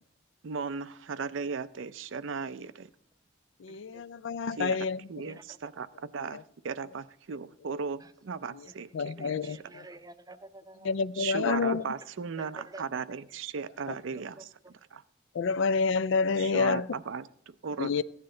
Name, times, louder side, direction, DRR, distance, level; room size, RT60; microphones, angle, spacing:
voice 1, 0.4-2.9 4.5-9.7 11.1-15.0 16.4-17.9, right 5 dB, 70° right, 14 dB, 0.5 m, -37 dB
voice 2, 3.6-5.0 8.9-9.6 10.8-11.8 15.4-16.8 17.8-18.0, left 5 dB, 65° left, 19 dB, 0.4 m, -28 dB
voice 3, 9.2-10.9 12.7-12.8 18.0-18.1, right 2 dB, 20° right, 11 dB, 0.6 m, -49 dB
15.0 x 9.6 x 3.8 m, 0.70 s
head